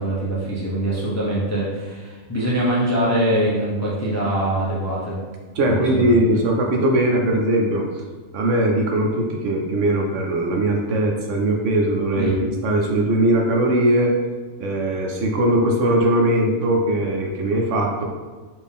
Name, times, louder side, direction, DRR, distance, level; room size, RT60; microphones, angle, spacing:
voice 1, 0.0-5.2 5.7-6.2 12.2-12.4, right 1 dB, 20° left, -7 dB, 0.4 m, -23 dB
voice 2, 5.6-7.8 8.3-14.1 14.6-18.0, right 1 dB, 65° right, 1 dB, 0.9 m, -20 dB
4.3 x 2.6 x 3.4 m, 1.4 s
omnidirectional pair, 1.4 m